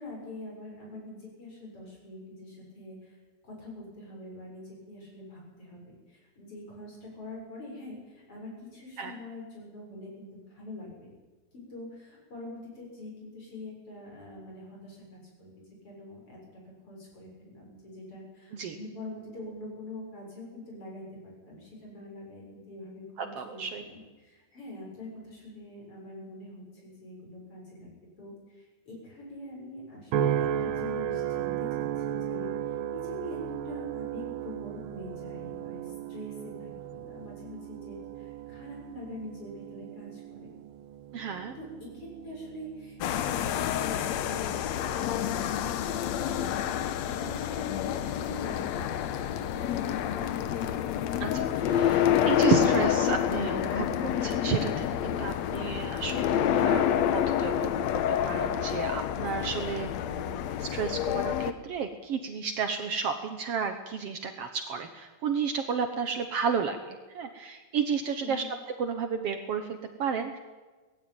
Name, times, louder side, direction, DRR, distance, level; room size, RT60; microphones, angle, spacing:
voice 1, 0.0-3.2 3.4-10.9 11.5-27.9 28.2-32.5 32.9-40.5 41.6-50.5 68.2-68.5, left 1 dB, 50° left, -2 dB, 7.8 m, -44 dB
voice 2, 23.2-23.8 41.1-41.6 51.2-68.5 68.8-70.4, right 6 dB, 60° right, 7 dB, 1.9 m, -32 dB
sound 1, 30.1-44.6 45.1-45.5, right 10 dB, 80° right, 1.2 m, -35 dB
sound 2, 43.0-61.5, left 10 dB, 75° left, 2.1 m, -28 dB
19.5 x 15.0 x 9.0 m, 1.3 s
omnidirectional pair, 3.3 m